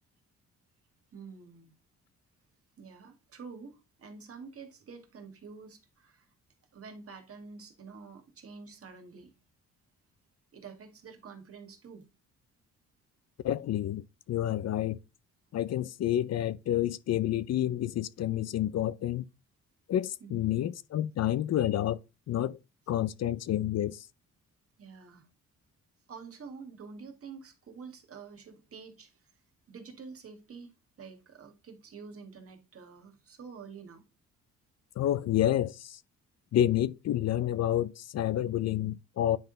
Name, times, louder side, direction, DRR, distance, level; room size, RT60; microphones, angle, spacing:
voice 1, 1.1-1.7 2.8-6.3 6.7-9.3 10.5-12.1 20.2-20.6 24.8-25.3 26.1-29.3 29.7-34.0, right 5 dB, 50° right, 2.0 m, -48 dB
voice 2, 13.4-15.0 15.5-19.3 19.9-22.0 22.3-22.6 22.9-24.1 35.0-36.0 36.5-39.4, left 12 dB, 60° left, 0.6 m, -29 dB
9.5 x 3.8 x 3.9 m
cardioid pair, 90°, 30 cm